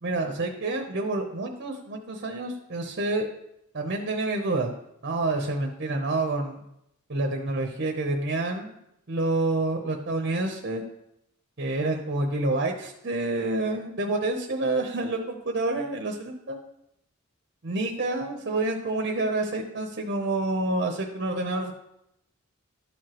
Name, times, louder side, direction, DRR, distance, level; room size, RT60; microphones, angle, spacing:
voice 1, 0.0-3.3 3.7-4.7 5.0-6.6 7.1-8.7 9.1-10.8 11.6-16.6 17.6-21.7, right 2 dB, 50° right, 3 dB, 0.8 m, -28 dB
12.0 x 4.8 x 3.0 m, 0.81 s
head